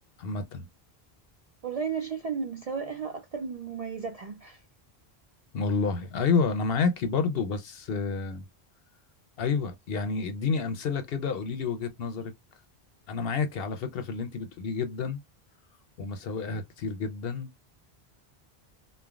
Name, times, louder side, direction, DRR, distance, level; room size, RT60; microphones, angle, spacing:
voice 1, 0.2-0.7 5.5-8.5 9.4-12.3 13.1-15.2 16.0-17.5, left 5 dB, 70° left, 0.8 m, -29 dB
voice 2, 1.6-4.6, right 6 dB, 50° right, 0.4 m, -34 dB
3.2 x 2.1 x 2.3 m
omnidirectional pair, 1.0 m